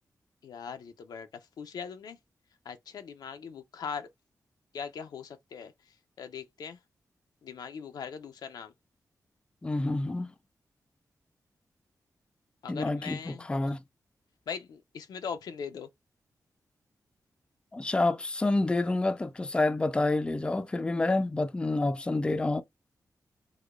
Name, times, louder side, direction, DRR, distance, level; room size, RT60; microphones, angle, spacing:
voice 1, 0.4-1.3 1.6-2.2 2.7-4.1 4.7-5.7 6.2-6.8 7.4-8.7 12.6-13.5 14.5-15.9, left 6 dB, 85° left, 0.5 m, -40 dB
voice 2, 9.6-10.3 12.7-13.8 17.7-22.6, left 2 dB, 15° left, 0.3 m, -28 dB
4.8 x 2.2 x 2.3 m
wide cardioid pair, 110°, 7 cm